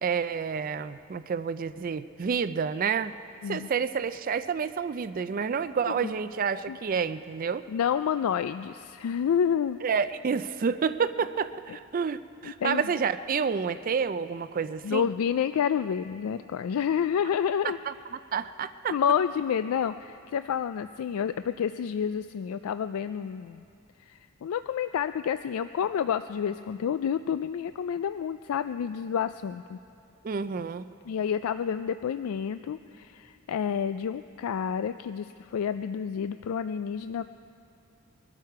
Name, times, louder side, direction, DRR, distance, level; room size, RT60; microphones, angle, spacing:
voice 1, 0.0-3.1 3.5-7.6 9.8-15.1 17.9-18.0 18.3-19.0 30.2-30.9, right 6 dB, 40° right, 13 dB, 0.4 m, -29 dB
voice 2, 7.7-9.8 12.4-12.8 14.8-17.8 18.9-23.6 24.1-29.8 31.1-37.2, left 8 dB, 80° left, 11 dB, 0.3 m, -29 dB
22.5 x 12.5 x 4.7 m, 2.5 s
head